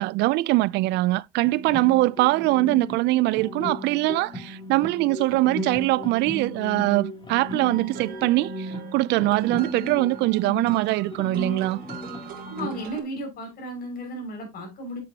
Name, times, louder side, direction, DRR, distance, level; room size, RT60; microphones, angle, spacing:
voice 1, 0.0-11.8, right 19 dB, 70° right, 0.4 m, -22 dB
sound 1, 1.4-12.9, left 1 dB, 25° left, 3.6 m, -36 dB
sound 2, 7.7-13.0, right 9 dB, 50° right, 2.8 m, -43 dB
voice 2, 12.4-15.0, right 1 dB, 50° left, 5.9 m, -34 dB
9.7 x 7.7 x 2.8 m
cardioid pair, 105°, 19 cm